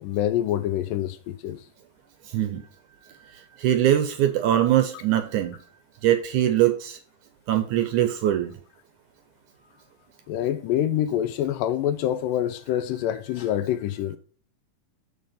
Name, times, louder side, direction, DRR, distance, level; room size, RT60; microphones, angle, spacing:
voice 1, 0.0-1.6 10.3-14.2, left 11 dB, 80° left, 2.1 m, -26 dB
voice 2, 3.6-5.6 6.0-7.0 7.5-8.5, right 12 dB, 75° right, 1.9 m, -22 dB
7.0 x 6.6 x 5.6 m
omnidirectional pair, 4.1 m